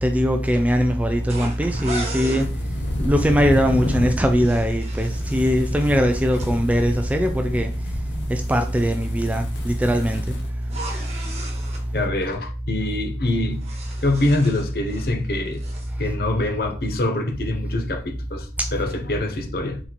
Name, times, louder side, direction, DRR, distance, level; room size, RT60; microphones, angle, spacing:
voice 1, 0.0-2.5 3.0-7.7 8.3-10.4, equal, 10° right, 0.3 m, -20 dB
sound 1, 1.3-2.5 4.1-6.5 10.6-11.8 13.3-15.2 15.5-15.9, right 1 dB, 35° right, 1.0 m, -37 dB
sound 2, 2.4-10.5, left 1 dB, 90° left, 0.9 m, -31 dB
voice 2, 11.9-13.7 14.0-15.6 16.0-19.8, left 2 dB, 55° left, 0.7 m, -25 dB
4.1 x 4.0 x 3.0 m
head